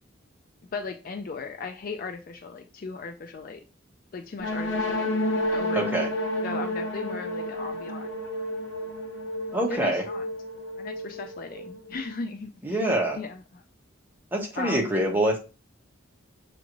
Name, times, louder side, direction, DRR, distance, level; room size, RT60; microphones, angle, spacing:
voice 1, 0.7-3.6 4.1-5.1 5.5-5.9 6.4-8.1 9.7-10.2 10.8-12.8 13.1-13.6 14.6-14.8, left 4 dB, 45° left, 0.4 m, -37 dB
sound 1, 4.4-12.1, left 1 dB, 65° left, 0.9 m, -31 dB
voice 2, 5.7-6.1 9.5-10.0 12.6-13.2 14.3-15.4, right 1 dB, 10° right, 1.0 m, -25 dB
6.9 x 2.5 x 3.0 m
head